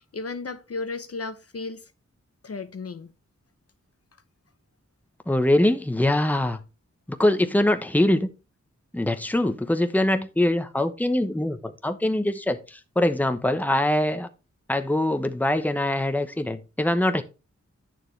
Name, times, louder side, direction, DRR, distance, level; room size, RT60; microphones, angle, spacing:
voice 1, 0.0-1.9 2.4-3.1, left 3 dB, 50° left, 0.8 m, -34 dB
voice 2, 5.3-6.6 7.1-8.3 8.9-14.3 14.7-17.2, left 1 dB, 5° left, 0.9 m, -23 dB
9.3 x 6.7 x 3.3 m
wide cardioid pair, 55°, 30 cm